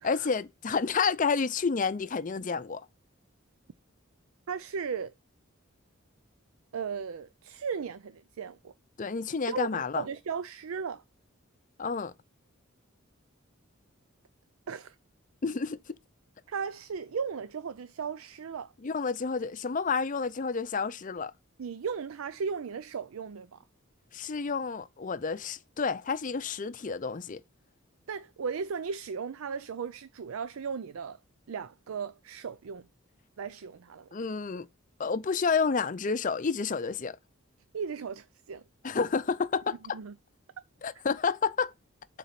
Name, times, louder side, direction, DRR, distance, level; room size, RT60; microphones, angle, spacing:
voice 1, 0.0-2.9 9.0-10.1 11.8-12.1 15.4-15.8 18.8-21.3 24.1-27.4 34.1-34.7 35.0-37.2 38.8-40.0 40.8-41.7, left 5 dB, 40° left, 0.5 m, -30 dB
voice 2, 4.5-5.1 6.7-8.7 9.5-11.0 14.7-15.0 16.5-18.7 21.6-23.6 28.1-31.2 31.5-32.9 33.4-34.1 37.7-38.6 39.9-40.1, right 6 dB, 90° right, 0.5 m, -36 dB
7.3 x 4.1 x 5.8 m
head